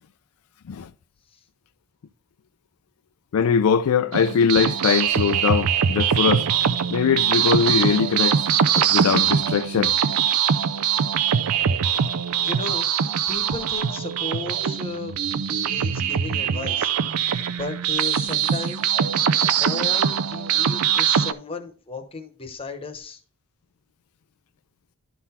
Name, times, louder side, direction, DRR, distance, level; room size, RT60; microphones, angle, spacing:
voice 1, 3.3-6.5 6.9-8.4 8.8-10.0, left 6 dB, 85° left, 0.4 m, -21 dB
sound 1, 4.1-21.3, right 8 dB, 80° right, 0.4 m, -22 dB
voice 2, 12.4-12.9 13.3-15.2 15.6-16.9 17.5-19.0 19.6-23.2, left 3 dB, 25° left, 0.9 m, -34 dB
11.0 x 3.9 x 4.2 m
head